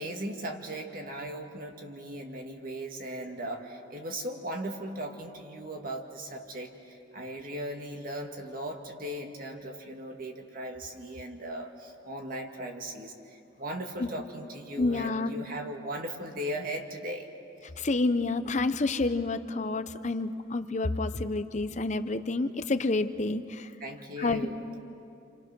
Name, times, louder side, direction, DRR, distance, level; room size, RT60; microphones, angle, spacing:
voice 1, 0.0-17.3 23.8-24.6, right 1 dB, 50° right, 3 dB, 2.1 m, -38 dB
voice 2, 14.8-15.3 17.8-23.7 24.2-24.5, left 3 dB, 40° left, 10 dB, 0.8 m, -29 dB
29.0 x 27.5 x 6.2 m, 2.6 s
head